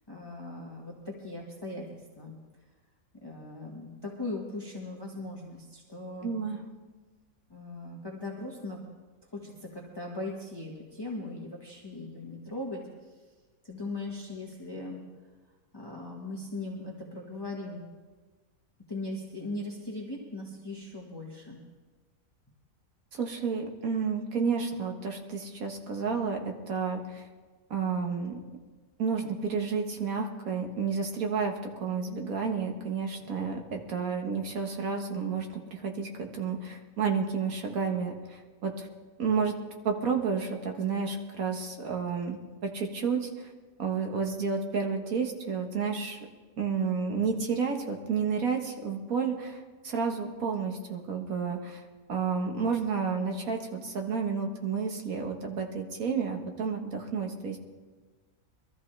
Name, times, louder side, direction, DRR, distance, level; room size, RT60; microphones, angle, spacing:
voice 1, 0.1-2.4 3.1-6.4 7.5-8.8 9.3-12.8 13.1-13.3 13.6-15.0 15.7-17.9 18.9-21.6, left 2 dB, 15° left, -3 dB, 1.5 m, -39 dB
voice 2, 6.2-6.6 23.1-27.2 27.7-28.4 29.0-31.5 31.8-38.9 39.2-39.6 39.8-42.4 42.7-43.5 43.8-46.2 46.6-49.6 49.8-51.8 52.1-57.6, right 5 dB, 75° right, 2 dB, 1.9 m, -31 dB
22.0 x 13.5 x 3.3 m, 1.3 s
omnidirectional pair, 1.5 m